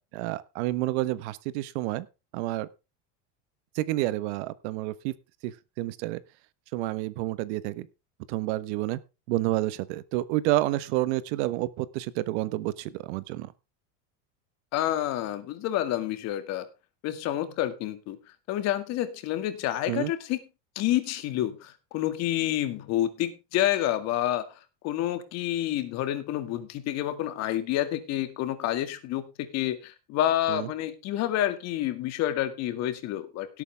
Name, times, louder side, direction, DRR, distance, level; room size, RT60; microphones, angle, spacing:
voice 1, 0.1-2.1 2.3-2.7 3.7-5.1 5.4-6.2 6.7-7.9 8.3-9.0 9.3-13.5 19.9-20.1 30.5-30.7, right 16 dB, 65° right, 17 dB, 1.2 m, -29 dB
voice 2, 14.7-16.7 17.0-18.2 18.5-20.4 20.8-33.6, left 13 dB, 45° left, 10 dB, 2.1 m, -29 dB
17.5 x 8.5 x 3.4 m, 0.28 s
supercardioid pair, 155°, 36 cm